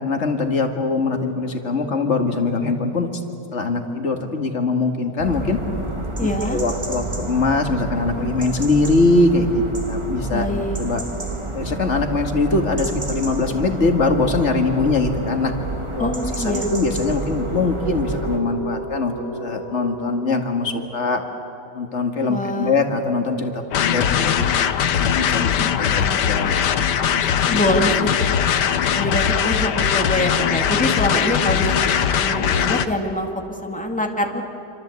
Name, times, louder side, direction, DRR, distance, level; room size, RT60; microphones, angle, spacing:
voice 1, 0.0-3.1 3.5-5.6 6.2-10.5 10.8-11.0 11.5-15.5 15.9-19.1 19.4-21.2 21.8-25.5 25.8-26.5 27.1-27.6, left 3 dB, 45° left, 4 dB, 2.2 m, -22 dB
sound 1, 5.2-18.4, right 2 dB, 15° right, 2.0 m, -29 dB
voice 2, 6.2-6.6 10.3-10.8 16.0-16.7 22.3-22.8 25.6-26.3 27.4-28.4 28.9-33.3 33.6-34.4, left 1 dB, 5° left, 3 dB, 2.0 m, -25 dB
sound 2, 12.1-22.1, right 1 dB, 70° right, 7.4 m, -36 dB
sound 3, 23.7-32.9, left 8 dB, 85° left, 1.6 m, -20 dB
27.0 x 25.5 x 8.3 m, 2.8 s
omnidirectional pair, 1.8 m